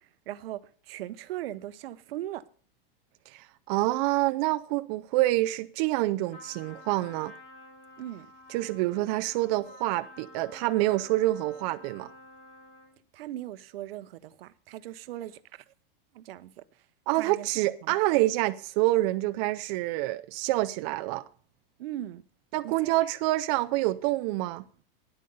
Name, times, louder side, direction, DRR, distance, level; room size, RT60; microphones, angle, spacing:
voice 1, 0.3-2.4 8.0-8.3 13.1-15.6 16.1-16.6 17.1-17.5 17.8-17.9 21.8-22.2 22.6-23.1, right 13 dB, 75° right, 0.8 m, -39 dB
voice 2, 3.3-7.3 8.5-12.1 17.1-21.2 22.5-24.6, right 18 dB, 45° right, 0.5 m, -27 dB
Trumpet, 6.3-13.0, left 2 dB, 50° left, 4.5 m, -50 dB
10.0 x 8.4 x 5.4 m
supercardioid pair, 145°, 29 cm